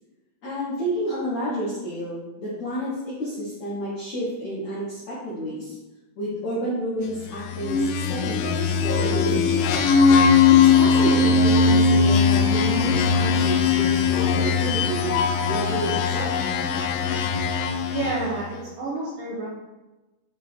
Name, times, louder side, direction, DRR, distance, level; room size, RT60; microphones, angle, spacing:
voice 1, 0.4-5.8 6.2-9.8 10.5-16.3, right 1 dB, 70° left, -10 dB, 1.7 m, -30 dB
sound 1, 7.5-18.4, left 5 dB, 90° left, 2.8 m, -20 dB
voice 2, 17.9-19.5, right 2 dB, 80° right, -5 dB, 2.0 m, -29 dB
7.4 x 2.5 x 5.1 m, 1.1 s
omnidirectional pair, 5.0 m